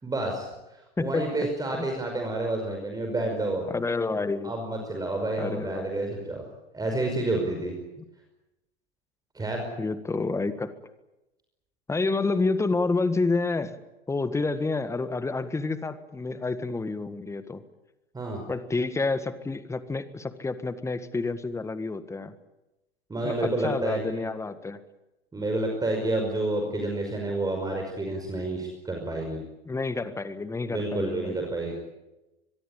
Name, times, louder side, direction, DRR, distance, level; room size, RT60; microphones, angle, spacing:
voice 1, 0.0-3.7 4.4-6.4 6.7-7.7 9.3-9.7 18.1-18.4 23.1-24.2 25.3-29.4 30.7-31.7, right 2 dB, 10° right, 2 dB, 5.4 m, -29 dB
voice 2, 1.0-1.5 1.8-1.9 3.7-4.5 5.4-5.9 9.8-10.7 11.9-13.8 14.1-17.6 18.5-22.3 23.2-24.8 29.6-31.4, left 3 dB, 10° left, 13 dB, 1.6 m, -29 dB
24.0 x 22.5 x 8.9 m, 0.98 s
figure-of-eight pair, 90°, 31 cm